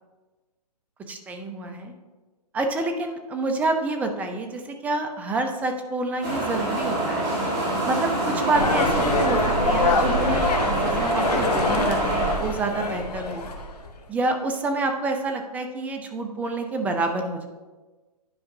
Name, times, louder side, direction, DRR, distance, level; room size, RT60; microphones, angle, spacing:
voice 1, 1.1-1.9 2.5-7.3 7.8-13.5 14.1-17.5, right 2 dB, 5° right, 5 dB, 0.5 m, -28 dB
sound 1, 6.2-12.3, right 1 dB, 30° right, 2.3 m, -25 dB
sound 2, 8.5-13.9, left 2 dB, 70° left, 1.0 m, -25 dB
10.5 x 4.9 x 2.7 m, 1.2 s
hypercardioid pair, 135°, 21 cm